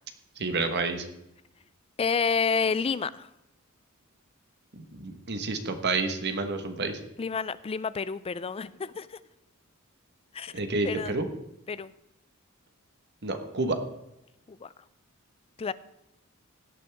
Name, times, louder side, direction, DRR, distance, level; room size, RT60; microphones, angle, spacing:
voice 1, 0.4-1.1 4.7-7.0 10.5-11.3 13.2-13.8, right 3 dB, 50° right, 7 dB, 1.3 m, -29 dB
voice 2, 2.0-3.3 7.2-9.1 10.3-10.5 10.8-11.1 11.7-11.9 14.5-14.7 15.6-15.7, left 5 dB, 25° left, 16 dB, 0.4 m, -29 dB
16.5 x 9.0 x 3.5 m, 0.87 s
head